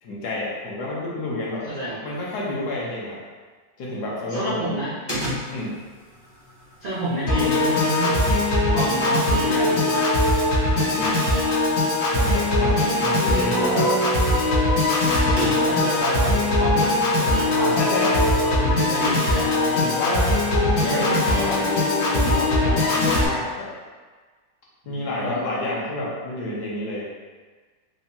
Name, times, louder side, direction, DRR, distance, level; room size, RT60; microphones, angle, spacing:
voice 1, 0.0-1.7 2.0-3.2 3.8-4.8 5.5-5.8 10.7-11.2 12.1-14.1 17.5-18.3 19.8-21.7 22.1-23.7 24.9-27.2, left 2 dB, 65° left, -5 dB, 1.2 m, -29 dB
voice 2, 1.6-2.0 4.3-4.9 6.8-8.3 8.7-10.2 12.5-12.7 15.6-18.1 18.4-19.6 20.9-21.0 24.8-25.4, right 1 dB, 70° right, -9 dB, 0.5 m, -30 dB
sound 1, 5.1-16.0, equal, 35° left, 0.4 m, -38 dB
Piano / Organ, 7.3-23.3, left 2 dB, 85° left, 1.9 m, -21 dB
4.8 x 2.2 x 2.7 m, 1.4 s
omnidirectional pair, 2.0 m